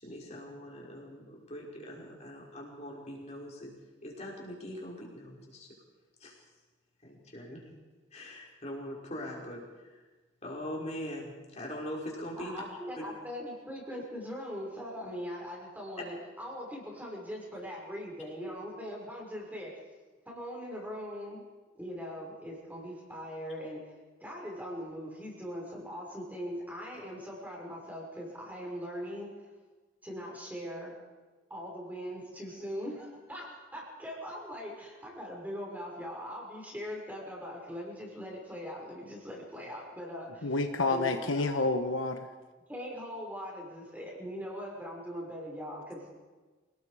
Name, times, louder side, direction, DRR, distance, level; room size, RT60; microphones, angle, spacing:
voice 1, 0.0-3.7 4.0-5.7 6.2-6.4 7.0-7.6 8.1-10.0 10.4-12.7 13.0-13.1, equal, 35° left, -2 dB, 5.5 m, -42 dB
voice 2, 12.4-19.7 20.3-21.4 21.7-23.9 24.2-29.3 30.0-31.0 31.5-40.5 40.9-41.3 42.7-46.1, equal, 10° right, -2 dB, 5.9 m, -41 dB
voice 3, 40.4-42.3, left 3 dB, 75° left, 6 dB, 1.3 m, -29 dB
28.0 x 19.0 x 5.1 m, 1.3 s
head